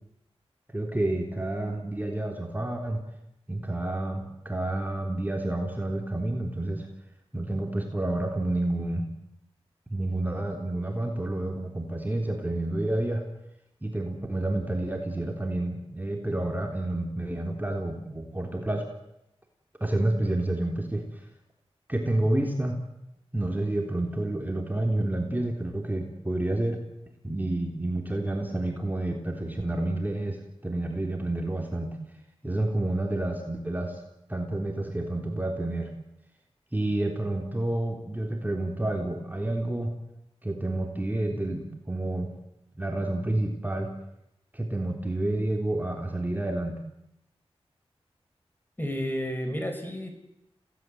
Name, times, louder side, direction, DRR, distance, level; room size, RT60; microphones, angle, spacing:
voice 1, 0.7-3.0 3.5-6.9 7.3-9.1 9.9-13.2 13.8-18.9 19.8-21.2 21.9-22.8 23.3-26.8 27.2-32.0 32.4-34.0 34.3-35.9 36.7-39.9 40.4-42.3 42.8-43.9 44.5-46.7, right 1 dB, 15° right, 2 dB, 3.5 m, -29 dB
voice 2, 48.8-50.1, equal, 20° left, 5 dB, 5.5 m, -31 dB
27.0 x 17.5 x 8.0 m, 0.84 s
cardioid pair, 50°, 11 cm